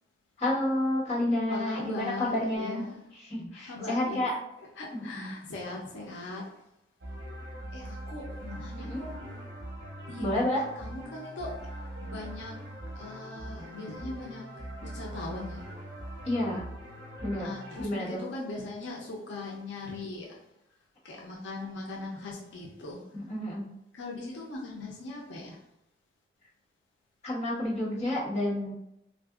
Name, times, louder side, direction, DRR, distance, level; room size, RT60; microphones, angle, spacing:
voice 1, 0.4-2.8 3.1-4.3 4.9-5.3 8.8-9.0 10.2-10.7 16.2-16.6 17.2-17.5 17.8-18.2 23.1-23.7 27.2-28.7, left 1 dB, 35° left, -8 dB, 1.1 m, -30 dB
voice 2, 1.5-3.0 3.6-4.2 4.8-6.5 7.7-9.4 10.1-10.5 10.8-11.5 12.0-12.6 12.9-14.5 14.8-15.6 17.4-20.4 21.0-23.0 23.9-25.6, left 2 dB, 85° left, -3 dB, 0.6 m, -40 dB
sound 1, 7.0-17.9, right 1 dB, 75° right, 0.9 m, -42 dB
3.6 x 2.5 x 2.3 m, 0.81 s
head